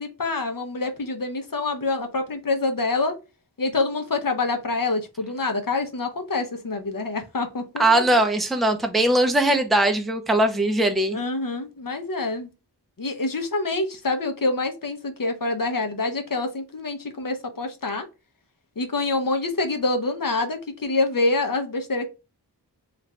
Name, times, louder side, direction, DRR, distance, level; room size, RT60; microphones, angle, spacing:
voice 1, 0.0-3.1 3.6-8.2 11.1-12.5 13.0-18.1 18.8-22.1, left 3 dB, 55° left, 0.7 m, -26 dB
voice 2, 7.8-11.2, right 1 dB, ahead, 0.5 m, -20 dB
3.2 x 2.5 x 3.2 m
wide cardioid pair, 45°, 41 cm